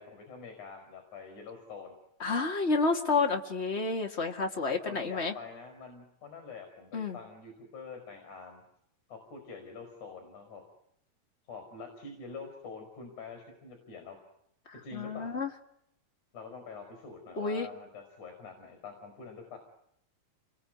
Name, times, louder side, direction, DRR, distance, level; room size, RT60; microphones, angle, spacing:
voice 1, 0.0-2.0 4.7-8.6 9.1-10.6 11.5-14.2 14.8-15.4 16.3-19.6, left 4 dB, 55° left, 5 dB, 6.4 m, -46 dB
voice 2, 2.2-5.3 6.9-7.2 14.9-15.5 17.4-17.7, left 4 dB, 25° left, 3 dB, 1.6 m, -30 dB
29.0 x 22.0 x 9.4 m, 0.75 s
omnidirectional pair, 4.1 m